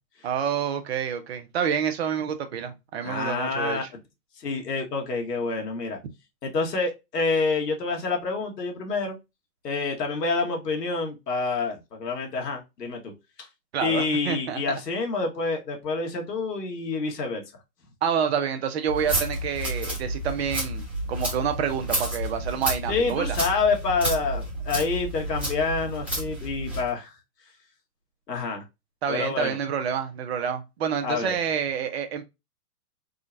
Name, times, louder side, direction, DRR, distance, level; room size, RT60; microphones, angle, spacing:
voice 1, 0.2-3.9 13.7-14.6 18.0-20.8 21.1-23.4 29.0-32.2, right 8 dB, 45° right, 0.6 m, -28 dB
voice 2, 3.0-3.8 4.4-6.0 6.4-9.2 9.6-13.1 13.4-13.5 13.8-17.4 22.9-27.1 28.3-28.6 29.1-29.6 31.0-31.3, left 4 dB, 85° left, 1.3 m, -27 dB
sound 1, 18.9-26.9, right 1 dB, 5° right, 1.0 m, -31 dB
3.7 x 2.1 x 2.5 m
hypercardioid pair, 130°, 47 cm